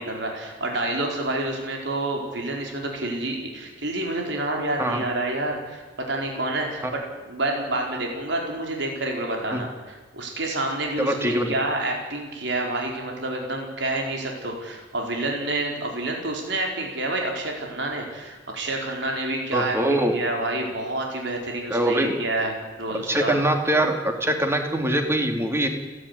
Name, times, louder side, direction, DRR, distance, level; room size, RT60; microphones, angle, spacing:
voice 1, 0.0-23.4, right 2 dB, 65° right, 1 dB, 4.6 m, -28 dB
voice 2, 11.0-11.5 19.5-20.1 21.7-22.1 23.1-25.7, right 1 dB, 15° right, 4 dB, 2.9 m, -23 dB
30.0 x 11.5 x 9.9 m, 1.3 s
head